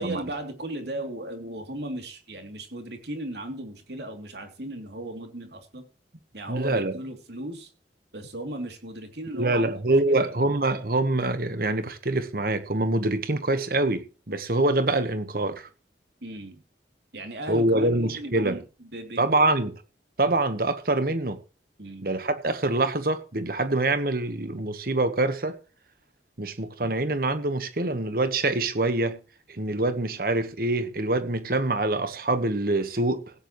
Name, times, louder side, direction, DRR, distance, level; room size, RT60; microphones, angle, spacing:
voice 1, 0.0-5.8 6.3-7.7 8.1-9.7 10.1-10.5 16.2-16.6 17.1-18.6 18.9-19.3 21.8-22.2, right 1 dB, 75° right, 3.0 m, -36 dB
voice 2, 6.5-7.0 9.3-15.7 17.5-18.6 19.2-19.7 20.2-21.4 22.0-25.6 26.4-29.2 29.5-33.2, right 2 dB, 55° right, 1.3 m, -25 dB
16.5 x 9.5 x 3.2 m
head